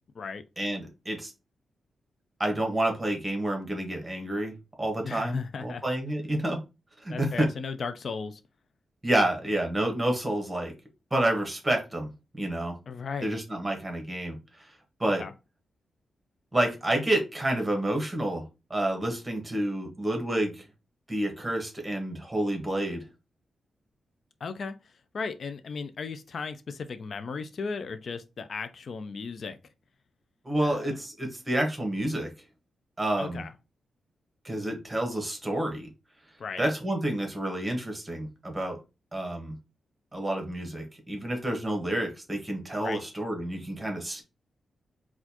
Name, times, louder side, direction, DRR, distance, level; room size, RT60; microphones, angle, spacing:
voice 1, 0.6-1.3 2.4-6.6 7.0-7.5 9.0-10.7 11.1-12.1 12.4-12.7 13.2-14.4 15.0-15.2 16.5-20.6 21.1-23.0 30.4-32.3 33.0-33.4 34.4-35.9 36.6-38.8 39.1-39.6 40.1-44.2, right 1 dB, 15° right, 1.2 m, -29 dB
voice 2, 5.0-5.8 7.1-8.4 12.9-13.3 15.2-15.3 24.4-29.6 30.6-30.9 33.2-33.5 36.4-36.6 42.7-43.0, left 5 dB, 55° left, 0.3 m, -36 dB
4.1 x 2.4 x 2.8 m
cardioid pair, 100°, 0 cm